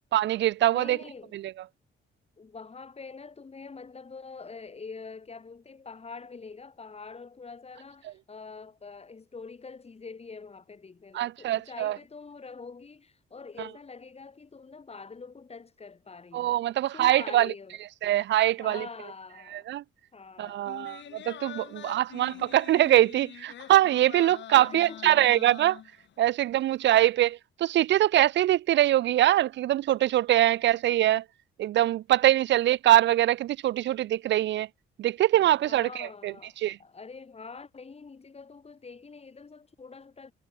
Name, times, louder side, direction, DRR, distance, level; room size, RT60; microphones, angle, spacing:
voice 1, 0.1-1.0 1.3-1.5 11.1-12.0 16.3-17.5 18.0-18.9 19.5-19.8 20.4-25.8 26.2-31.2 31.6-34.7 35.0-36.3 36.6-36.8, right 13 dB, 65° right, 0.5 m, -23 dB
voice 2, 0.7-1.4 2.4-16.6 16.9-17.8 18.5-19.8 20.1-20.8 24.5-25.3 35.4-40.3, left 4 dB, 30° left, 4.7 m, -45 dB
sound 1, 20.7-26.3 26.7-26.8, left 11 dB, 65° left, 1.7 m, -45 dB
cardioid pair, 90°, 20 cm